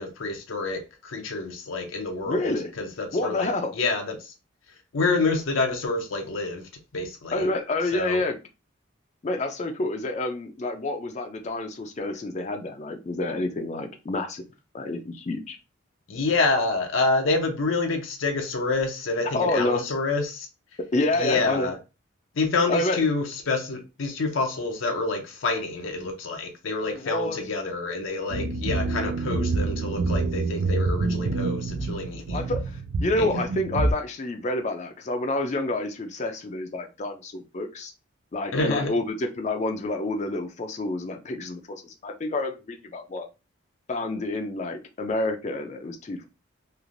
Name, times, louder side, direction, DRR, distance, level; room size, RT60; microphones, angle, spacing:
voice 1, 0.0-4.3 4.9-7.5 7.9-8.2 16.1-20.5 21.1-21.8 22.4-32.4 33.2-33.4 38.5-38.9, left 3 dB, 80° left, 0.6 m, -27 dB
voice 2, 2.3-2.7 3.1-3.7 7.3-8.4 9.2-14.4 14.7-15.6 19.3-19.9 20.9-21.7 22.7-23.0 26.8-27.4 32.3-32.6 33.0-37.9 38.3-43.3 43.9-46.2, left 2 dB, 35° left, 0.4 m, -28 dB
sound 1, 28.3-33.9, right 3 dB, 75° right, 0.4 m, -27 dB
3.1 x 2.5 x 2.5 m
head